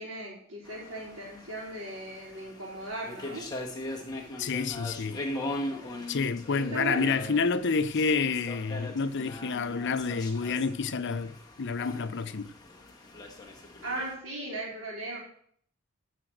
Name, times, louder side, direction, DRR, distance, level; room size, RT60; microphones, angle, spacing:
voice 1, 0.0-3.4 6.5-7.3 13.8-15.2, right 2 dB, 70° right, 3.8 m, -37 dB
sound 1, 0.7-14.1, left 1 dB, 20° left, 1.8 m, -40 dB
voice 2, 4.4-5.3 6.1-12.5, left 5 dB, 55° left, 0.6 m, -29 dB
13.5 x 5.0 x 7.8 m
head